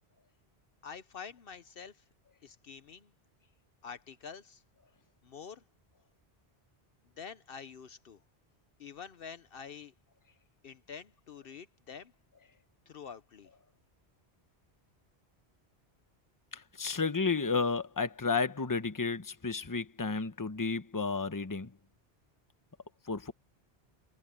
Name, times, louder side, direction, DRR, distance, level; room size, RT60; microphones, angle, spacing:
voice 1, 0.8-2.0 2.4-3.1 3.8-4.6 5.2-5.6 7.2-8.2 8.8-9.9 10.6-12.1 12.9-13.5, left 6 dB, 60° left, 0.9 m, -47 dB
voice 2, 16.5-21.7 23.1-23.3, left 4 dB, 20° left, 0.9 m, -32 dB
omnidirectional pair, 1.1 m